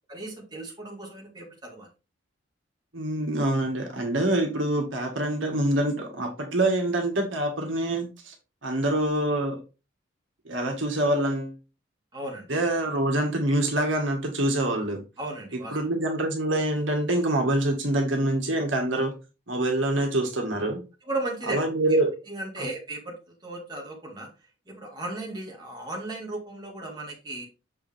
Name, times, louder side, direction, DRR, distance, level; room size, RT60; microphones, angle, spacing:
voice 1, 0.1-1.9 12.1-12.5 15.2-15.8 21.1-21.6 22.3-23.2 23.4-24.3 24.7-27.5, right 2 dB, 20° right, 2.0 m, -35 dB
voice 2, 2.9-8.3 8.6-9.6 10.5-11.6 12.5-15.0 15.7-19.1 19.5-20.8 21.5-22.1 22.6-22.7, right 1 dB, 80° right, 1.7 m, -25 dB
6.9 x 4.8 x 3.4 m
head